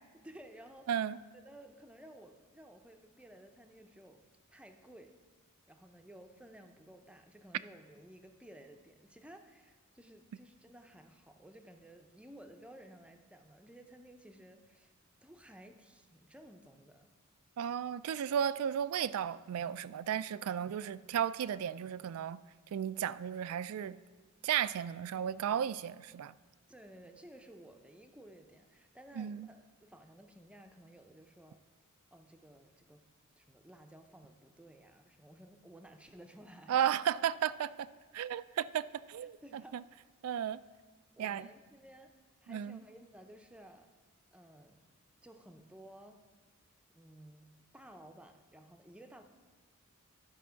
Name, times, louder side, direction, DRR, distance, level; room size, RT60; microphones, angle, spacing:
voice 1, 0.2-0.9 1.4-4.2 4.5-5.1 5.7-14.9 15.2-17.1 26.7-31.6 32.1-33.0 33.4-36.8 39.2-39.8 41.1-42.1 42.4-43.9 44.3-44.8 45.2-46.2 47.0-47.5 47.7-49.2, right 1 dB, 5° right, 6 dB, 0.6 m, -55 dB
voice 2, 0.9-1.2 17.6-22.4 22.7-24.0 24.4-26.3 29.2-29.5 36.7-37.9 38.1-39.8 40.2-40.6 41.2-41.5 42.5-42.8, right 9 dB, 75° right, 17 dB, 0.3 m, -34 dB
12.0 x 5.5 x 5.7 m, 1.4 s
head